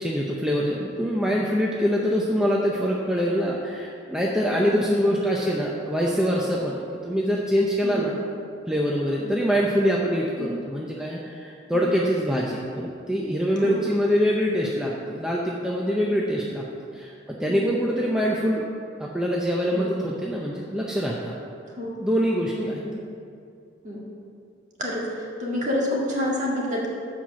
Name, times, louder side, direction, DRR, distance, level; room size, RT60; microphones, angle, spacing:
voice 1, 0.0-8.1 8.7-16.6 16.9-18.6 19.0-21.3 22.0-22.8, equal, 5° right, -4 dB, 0.6 m, -24 dB
voice 2, 4.6-4.9 7.8-8.1 9.2-9.4 10.4-10.5 11.7-11.9 13.6-13.8 16.0-16.2 17.5-17.8 19.7-19.9 21.7-21.9 22.5-22.9 23.8-24.0 24.8-26.9, left 1 dB, 40° right, -4 dB, 1.9 m, -29 dB
7.7 x 5.7 x 7.1 m, 2.4 s
head